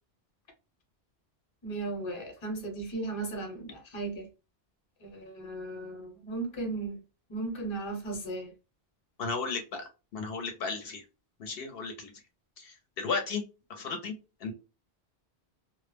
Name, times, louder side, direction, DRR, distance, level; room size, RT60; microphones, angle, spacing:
voice 1, 1.6-4.3 5.0-7.0 7.3-8.5, right 3 dB, 30° left, 0.7 m, -36 dB
voice 2, 9.2-11.0 11.4-12.1 12.6-13.4 13.7-14.1 14.4-14.5, left 4 dB, 70° left, 0.7 m, -34 dB
2.1 x 2.0 x 3.2 m
omnidirectional pair, 1.0 m